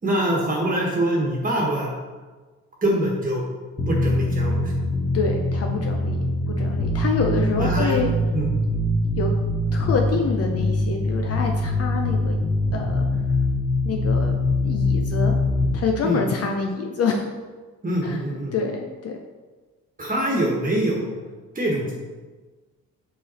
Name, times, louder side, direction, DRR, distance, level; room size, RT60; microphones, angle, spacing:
voice 1, 0.0-1.9 2.8-3.4 3.9-4.8 7.6-8.0 8.3-8.5 16.0-16.2 17.8-18.5 20.0-21.2 21.5-21.9, right 1 dB, 30° right, -3 dB, 1.4 m, -24 dB
sound 1, 3.8-15.7, left 1 dB, 25° left, 1.7 m, -23 dB
voice 2, 5.1-6.2 6.5-8.1 9.2-9.3 9.7-12.4 12.7-13.0 13.8-14.3 14.6-15.4 15.7-17.3 18.0-18.2 18.5-19.2, left 4 dB, 50° left, 2 dB, 0.7 m, -26 dB
5.4 x 5.0 x 4.2 m, 1.3 s
cardioid pair, 90°, 30 cm